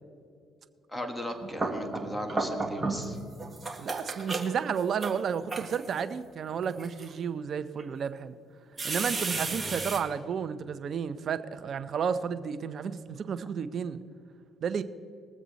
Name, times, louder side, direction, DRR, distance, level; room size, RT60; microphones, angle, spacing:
voice 1, 0.9-3.2, equal, ahead, 3 dB, 1.5 m, -37 dB
washing hands (midplane), 1.2-3.1 3.4-6.0 6.6-7.1 7.8-7.9 8.8-10.0, right 3 dB, 25° right, 1.8 m, -33 dB
voice 2, 3.8-8.3 8.8-14.0 14.6-14.8, right 7 dB, 55° right, 12 dB, 0.7 m, -32 dB
21.0 x 7.4 x 4.1 m, 2.4 s
cardioid pair, 85°, 0 cm